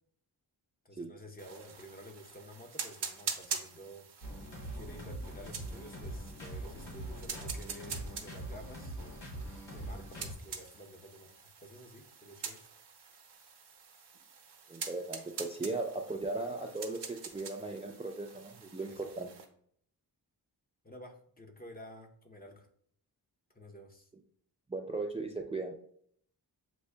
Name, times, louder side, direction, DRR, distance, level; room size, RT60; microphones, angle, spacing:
voice 1, 0.8-4.1 4.7-9.0 9.7-12.6 18.9-19.3 20.8-22.7 23.5-24.1, equal, 20° left, 3 dB, 0.7 m, -51 dB
sound 1, 1.4-19.5, right 6 dB, 75° right, 0.8 m, -45 dB
sound 2, 4.2-10.3, right 1 dB, 85° left, 1.3 m, -43 dB
voice 2, 14.7-19.3 24.7-25.7, right 3 dB, 15° right, 2 dB, 0.4 m, -37 dB
7.7 x 2.6 x 2.2 m, 0.63 s
wide cardioid pair, 75°, 41 cm